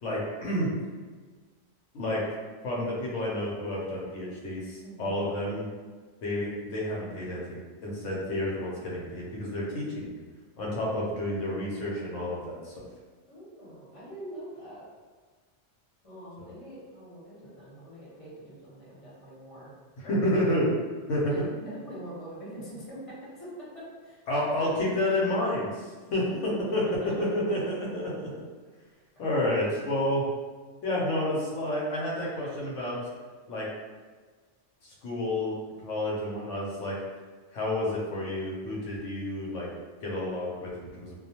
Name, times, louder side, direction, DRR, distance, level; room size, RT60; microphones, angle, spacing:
voice 1, 0.0-0.7 1.9-2.2 2.6-5.7 6.2-10.1 10.6-12.9 16.4-16.5 20.0-20.7 21.1-21.3 24.3-26.3 26.7-26.8 27.2-28.3 29.2-30.2 30.8-33.0 33.5-33.7 34.8-35.6 35.8-37.0 37.5-39.7 40.0-41.1, left 1 dB, 85° left, -5 dB, 1.0 m, -30 dB
voice 2, 4.8-5.2 13.3-14.8 16.0-19.7 21.3-23.0 23.3-23.5 24.0-24.2 24.6-24.7 26.1-26.3 26.8-27.1 27.5-27.6 28.9-29.0 29.6-29.8, right 1 dB, 30° left, -9 dB, 0.9 m, -44 dB
2.3 x 2.2 x 2.7 m, 1.4 s
omnidirectional pair, 1.2 m